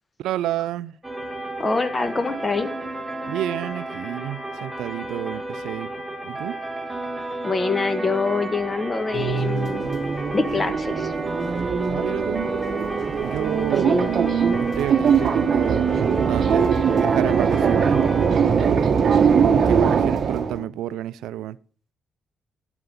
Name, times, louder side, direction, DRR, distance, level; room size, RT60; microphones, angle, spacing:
voice 1, 0.2-1.0 3.3-5.9 6.2-6.5 11.9-12.5 13.2-15.9 16.3-18.3 19.3-21.6, right 12 dB, 85° right, 0.3 m, -30 dB
sound 1, 1.0-18.4, right 1 dB, 10° right, 1.4 m, -32 dB
voice 2, 1.6-2.7 7.4-9.8 10.3-11.1 13.8-14.1, left 3 dB, 25° left, 1.3 m, -24 dB
sound 2, 9.1-20.6, right 6 dB, 50° right, 1.0 m, -21 dB
11.0 x 5.8 x 5.4 m
cardioid pair, 90°, 0 cm